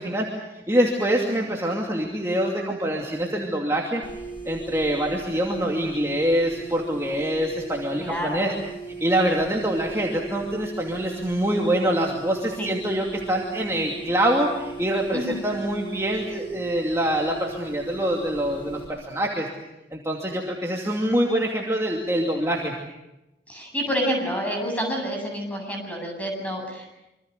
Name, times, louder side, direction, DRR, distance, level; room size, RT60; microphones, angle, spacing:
voice 1, 0.0-4.0 4.4-8.5 9.0-19.5 19.9-22.7, right 1 dB, 15° right, -1 dB, 2.6 m, -25 dB
sound 1, 4.0-18.9, right 4 dB, 30° left, 6.7 m, -38 dB
voice 2, 8.0-8.5 12.6-12.7 15.1-15.4 23.5-26.9, equal, 10° left, 1 dB, 8.0 m, -28 dB
26.5 x 25.5 x 6.7 m, 0.93 s
head